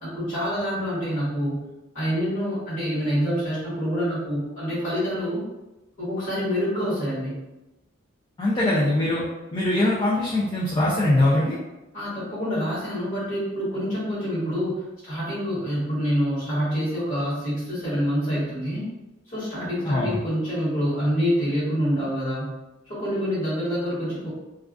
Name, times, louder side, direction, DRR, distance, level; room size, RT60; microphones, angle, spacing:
voice 1, 0.0-1.6 1.9-5.4 6.0-7.4 11.9-18.8 19.3-22.5 22.9-24.3, equal, 40° left, -11 dB, 1.2 m, -26 dB
voice 2, 8.4-9.2 9.5-11.6 19.8-20.2, left 1 dB, 20° left, -6 dB, 0.3 m, -22 dB
2.3 x 2.2 x 2.4 m, 1.0 s
head